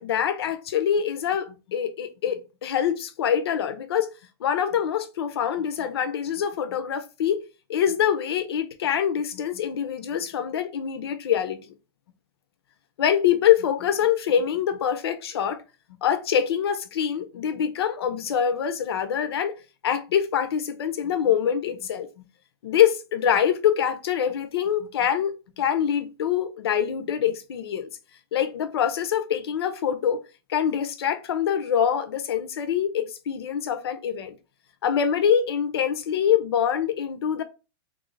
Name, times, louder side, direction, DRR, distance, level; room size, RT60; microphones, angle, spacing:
voice 1, 0.0-4.1 4.4-7.4 7.7-11.6 13.0-15.6 16.0-19.5 19.8-22.1 22.6-27.9 28.3-30.2 30.5-34.3 34.8-37.4, left 9 dB, 80° left, 0.7 m, -24 dB
3.8 x 3.1 x 3.1 m
supercardioid pair, 165°, 13 cm